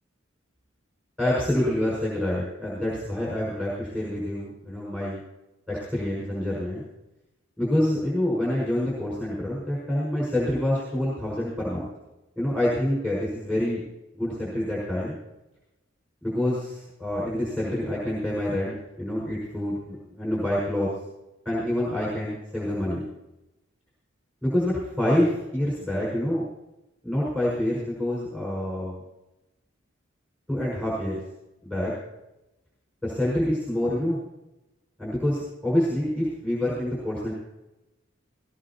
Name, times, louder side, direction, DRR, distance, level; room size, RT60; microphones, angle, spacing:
voice 1, 1.2-5.2 5.7-6.8 7.6-11.9 12.4-13.8 14.1-15.2 16.2-20.9 21.4-23.0 24.4-26.5 27.0-28.9 30.5-31.2 31.6-31.9 33.0-34.2 35.0-37.3, left 1 dB, 5° right, -6 dB, 5.5 m, -27 dB
19.5 x 19.0 x 2.9 m, 0.97 s
head